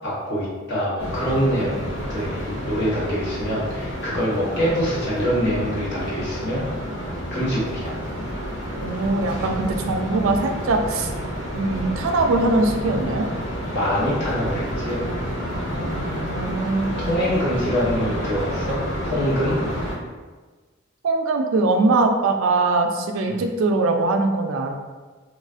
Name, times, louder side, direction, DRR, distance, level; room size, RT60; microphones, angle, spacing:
voice 1, 0.0-6.6 7.3-7.9 13.7-15.1 17.0-19.6 23.2-23.4, equal, 60° left, -7 dB, 0.9 m, -25 dB
sound 1, 1.0-19.9, equal, 90° left, 1.4 m, -29 dB
voice 2, 8.8-11.1 11.5-13.3 15.7-17.0 21.0-24.7, right 3 dB, 70° right, 4 dB, 0.3 m, -22 dB
3.3 x 2.4 x 2.4 m, 1.4 s
head